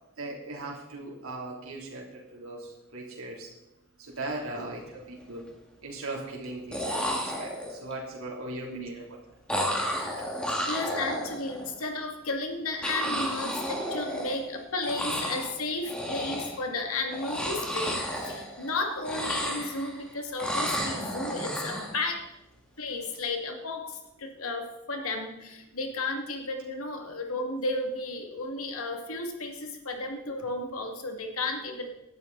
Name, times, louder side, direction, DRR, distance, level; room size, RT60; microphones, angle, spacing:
voice 1, 0.2-2.0 2.3-2.6 2.9-3.5 4.0-5.4 5.8-9.0, right 2 dB, 80° right, -3 dB, 3.3 m, -38 dB
sound 1, 4.3-4.5 4.8-5.4 6.4-6.5 6.7-7.9 9.5-11.7 12.8-14.5 14.8-15.5 15.8-16.6 17.1-18.7 19.0-20.0 20.4-21.9, equal, 5° left, 2.2 m, -32 dB
voice 2, 10.7-22.3 22.8-31.9, left 2 dB, 85° left, 3 dB, 2.4 m, -33 dB
18.0 x 12.0 x 4.1 m, 0.93 s
head